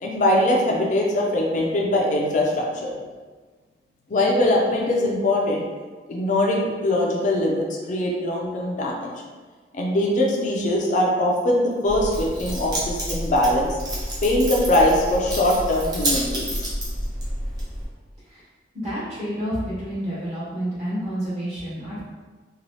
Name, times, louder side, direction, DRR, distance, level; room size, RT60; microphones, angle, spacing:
voice 1, 0.0-2.9 4.1-5.6 6.1-9.1 9.7-13.8 14.2-16.7, left 1 dB, 45° left, -2 dB, 0.4 m, -22 dB
Keys jangling, 11.8-17.9, right 1 dB, 25° right, 0.7 m, -29 dB
voice 2, 18.7-22.0, equal, 40° right, -10 dB, 1.4 m, -29 dB
3.0 x 2.3 x 2.7 m, 1.4 s
head